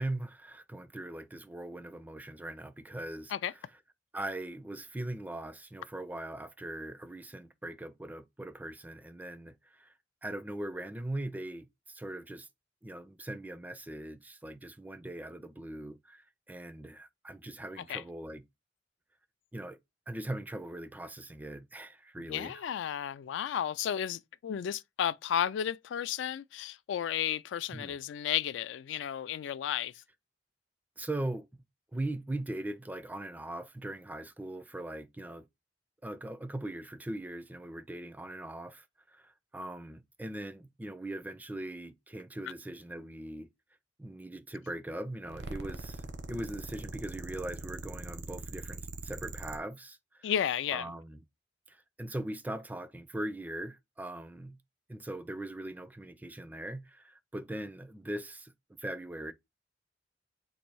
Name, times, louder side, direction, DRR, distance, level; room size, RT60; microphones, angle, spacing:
voice 1, 0.0-3.3 4.1-9.9 10.2-12.5 12.8-18.4 19.5-19.8 20.1-22.6 27.7-28.0 31.0-31.5 31.9-35.5 36.0-43.5 44.0-50.3 50.7-51.2 51.7-54.6 54.9-58.5 58.8-59.3, right 1 dB, 10° right, 0.4 m, -40 dB
voice 2, 22.3-29.9 50.2-50.9, left 9 dB, 75° left, 0.3 m, -33 dB
sound 1, 45.3-49.6, right 3 dB, 70° right, 0.7 m, -42 dB
4.1 x 2.6 x 4.6 m
head